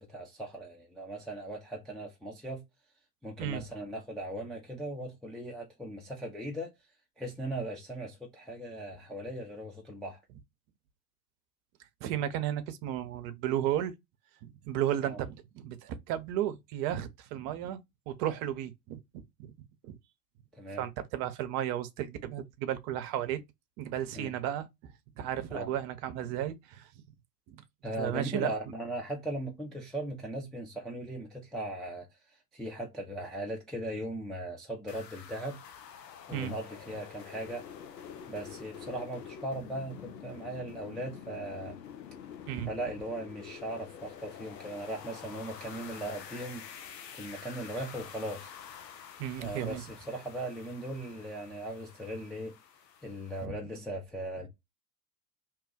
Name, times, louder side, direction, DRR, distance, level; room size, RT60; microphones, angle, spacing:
voice 1, 0.0-2.6 3.2-6.7 7.2-10.2 15.0-15.2 20.5-20.8 24.1-24.3 25.5-25.7 27.8-32.1 32.5-35.6 36.3-37.6 38.3-41.8 42.7-46.6 47.1-48.5 49.4-52.5 53.0-54.5, right 1 dB, ahead, 0.3 m, -38 dB
voice 2, 12.0-13.9 14.4-19.2 19.8-20.0 20.8-23.4 23.8-24.9 25.2-26.9 27.5-27.6 28.0-28.5 36.3-36.5 42.5-42.7 49.2-49.8 53.4-53.6, right 11 dB, 45° right, 0.7 m, -34 dB
sound 1, 34.9-53.5, left 8 dB, 75° left, 0.8 m, -48 dB
2.8 x 2.2 x 3.7 m
figure-of-eight pair, 80°, 50 cm